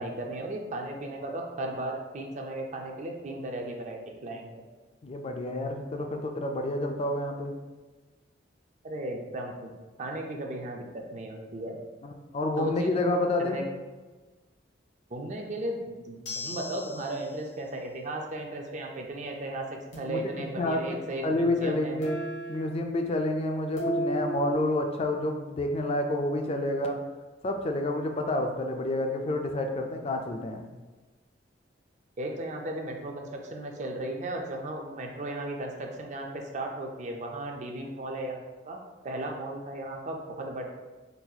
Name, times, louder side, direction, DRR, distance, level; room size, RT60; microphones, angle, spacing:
voice 1, 0.0-4.5 8.8-9.7 10.0-11.8 12.6-12.9 13.4-13.7 15.1-22.0 32.2-38.8 39.0-40.6, right 1 dB, 40° right, 2 dB, 0.4 m, -35 dB
voice 2, 5.0-7.5 12.0-13.6 20.1-20.2 20.6-20.8 21.2-22.2 22.5-27.0 27.4-30.6, left 1 dB, 30° left, 4 dB, 0.3 m, -29 dB
sound 1, 16.3-17.3 19.9-20.7 22.0-23.3 23.8-24.5, right 1 dB, 80° left, 1.4 m, -35 dB
3.9 x 2.3 x 2.7 m, 1.3 s
head